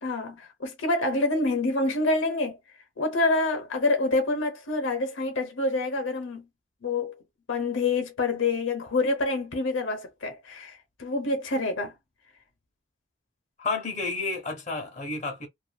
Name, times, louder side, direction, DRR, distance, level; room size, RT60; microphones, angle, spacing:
voice 1, 0.0-2.6 3.0-6.5 6.8-7.2 7.5-11.9, left 2 dB, 85° left, 0.8 m, -27 dB
voice 2, 13.6-15.5, left 3 dB, 35° left, 0.9 m, -31 dB
2.6 x 2.5 x 2.2 m
head